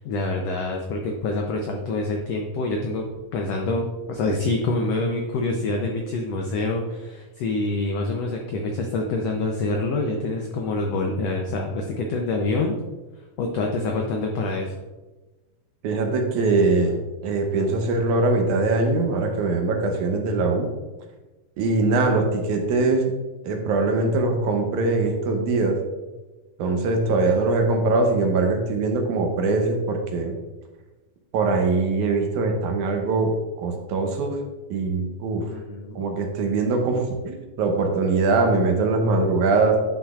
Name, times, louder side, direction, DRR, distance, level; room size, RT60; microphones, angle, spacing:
voice 1, 0.0-3.1 3.3-12.7 13.4-14.7 35.5-36.1, left 2 dB, 80° left, 1 dB, 1.4 m, -26 dB
voice 2, 15.8-20.7 21.6-23.1 23.4-25.8 26.6-30.4 31.3-34.4 34.7-35.5 36.0-39.8, right 3 dB, 75° right, 3 dB, 2.1 m, -22 dB
9.8 x 5.7 x 2.4 m, 1.2 s
omnidirectional pair, 3.7 m